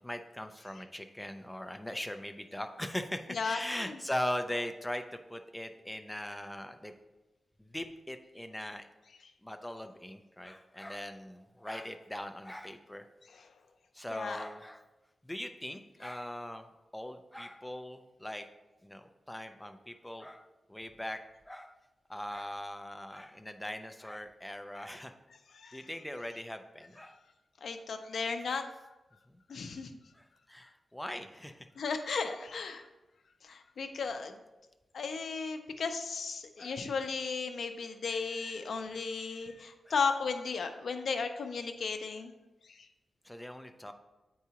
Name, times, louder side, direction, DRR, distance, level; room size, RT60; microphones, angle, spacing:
voice 1, 0.0-6.9 7.6-8.9 9.4-13.0 13.9-14.8 15.2-16.7 16.9-18.5 18.8-21.7 22.1-25.1 25.7-27.2 28.5-28.6 29.3-29.4 30.1-31.7 36.6-36.8 39.9-40.0 43.2-43.9, left 1 dB, 5° left, 7 dB, 0.3 m, -40 dB
voice 2, 3.3-4.0 13.3-13.5 14.1-14.4 25.5-25.9 27.6-28.6 29.5-29.9 31.8-32.8 33.4-34.4 34.9-42.3 42.6-42.9, left 5 dB, 65° left, 7 dB, 0.5 m, -35 dB
8.0 x 4.7 x 2.8 m, 1.1 s
wide cardioid pair, 175°, 0 cm